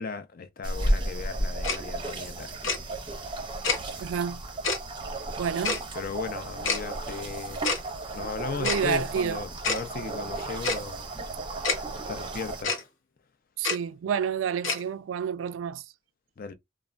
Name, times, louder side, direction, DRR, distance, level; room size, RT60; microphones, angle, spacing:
voice 1, 0.0-2.5 5.9-7.7 8.1-11.1 12.1-12.9 16.4-16.5, left 5 dB, 50° left, 0.5 m, -36 dB
sound 1, 0.6-12.6, right 1 dB, 25° right, 0.6 m, -34 dB
Tick-tock, 1.6-1.8 2.6-2.8 3.6-3.8 4.6-4.8 5.6-5.8 6.6-6.8 7.6-7.8 8.6-8.8 9.6-9.8 10.6-10.8 11.6-11.8 12.6-12.8 13.6-13.8 14.6-14.8, left 4 dB, 75° left, 0.8 m, -26 dB
voice 2, 4.0-4.4 5.4-5.8 8.6-9.4 13.6-15.8, right 7 dB, 85° right, 0.3 m, -29 dB
3.3 x 2.0 x 2.4 m
head